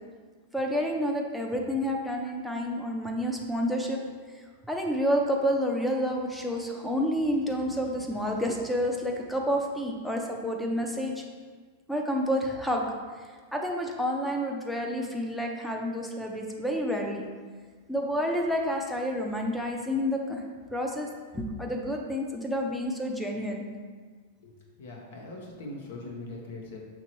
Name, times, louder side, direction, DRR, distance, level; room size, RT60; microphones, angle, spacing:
voice 1, 0.5-4.0 4.3-11.2 11.9-12.9 13.5-17.3 17.9-20.4 20.7-21.1 21.3-23.6, equal, ahead, 1 dB, 0.5 m, -29 dB
voice 2, 24.4-26.8, left 2 dB, 75° left, 0 dB, 1.0 m, -41 dB
5.7 x 2.9 x 3.0 m, 1.5 s
supercardioid pair, 135°, 0 cm